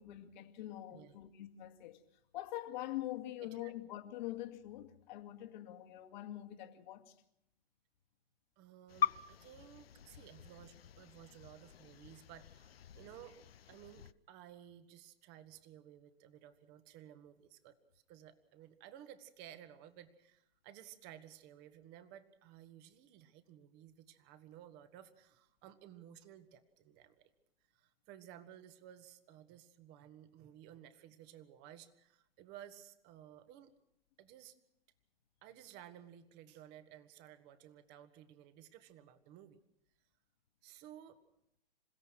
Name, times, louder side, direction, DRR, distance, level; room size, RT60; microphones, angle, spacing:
voice 1, 0.0-7.2, left 14 dB, 50° left, 2.3 m, -45 dB
voice 2, 8.6-13.4 13.7-27.3 27.7-33.7 34.2-34.6 35.4-39.6 40.6-41.2, right 11 dB, 35° right, 1.8 m, -56 dB
sound 1, 8.9-14.1, left 9 dB, 75° left, 0.7 m, -42 dB
28.0 x 16.5 x 6.3 m
hypercardioid pair, 120°, 30 cm